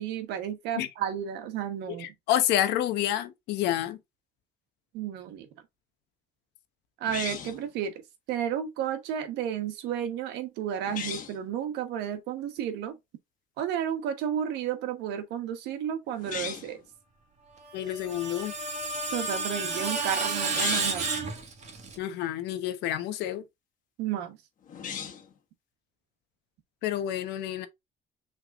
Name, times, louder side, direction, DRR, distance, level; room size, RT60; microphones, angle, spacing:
voice 1, 0.0-2.1 4.9-5.5 7.0-7.9 8.3-13.0 13.6-16.8 19.1-21.1 24.0-24.4, right 9 dB, 90° right, 1.1 m, -32 dB
voice 2, 2.0-4.0 17.7-18.5 22.0-23.4 26.8-27.7, left 12 dB, 85° left, 0.9 m, -29 dB
sound 1, 7.1-7.7 10.8-11.4 16.2-16.8 20.4-21.1 24.7-25.3, left 7 dB, 50° left, 1.4 m, -36 dB
Screech, 17.7-22.0, right 3 dB, 45° right, 1.7 m, -31 dB
6.0 x 3.5 x 2.4 m
cardioid pair, 110°, 17 cm